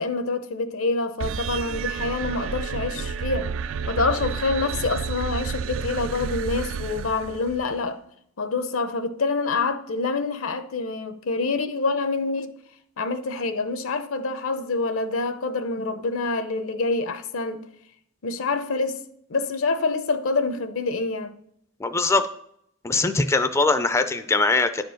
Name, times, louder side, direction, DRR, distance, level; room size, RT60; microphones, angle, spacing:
voice 1, 0.0-3.6 3.9-8.0 8.4-12.6 13.0-17.7 18.2-19.0 19.3-21.3, left 3 dB, 75° left, 0.8 m, -26 dB
sound 1, 1.2-7.8, right 6 dB, 65° right, 0.3 m, -30 dB
voice 2, 21.8-22.3 22.8-24.8, left 3 dB, 15° left, 0.3 m, -21 dB
10.0 x 4.4 x 6.4 m
head